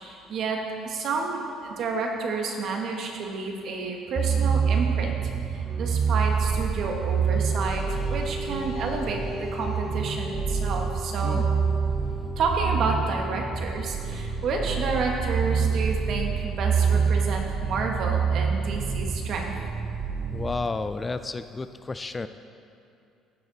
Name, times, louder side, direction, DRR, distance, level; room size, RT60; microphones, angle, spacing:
voice 1, 0.0-5.2 5.5-11.5 12.4-19.5, right 4 dB, 60° right, 1 dB, 1.3 m, -30 dB
sound 1, 4.2-20.7, right 6 dB, 40° right, 0.6 m, -27 dB
sound 2, 7.0-17.9, left 2 dB, 50° left, 1.1 m, -41 dB
voice 2, 20.3-22.3, left 3 dB, 25° left, 11 dB, 0.3 m, -31 dB
15.5 x 5.1 x 4.0 m, 2.6 s
supercardioid pair, 90°, 0 cm